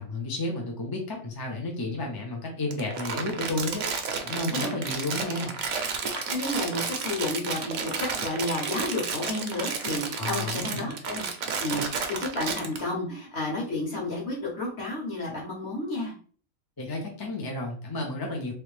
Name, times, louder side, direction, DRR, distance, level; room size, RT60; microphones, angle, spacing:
voice 1, 0.0-3.8 4.2-5.5 10.2-10.9 16.8-18.5, left 2 dB, 25° left, 0 dB, 0.5 m, -32 dB
Crumpling crinkling, 2.7-12.8, right 5 dB, 65° right, 0.9 m, -32 dB
voice 2, 4.5-4.8 6.0-11.2 11.6-16.1, left 2 dB, 45° left, -3 dB, 1.5 m, -31 dB
3.2 x 3.1 x 3.2 m, 0.42 s
omnidirectional pair, 1.6 m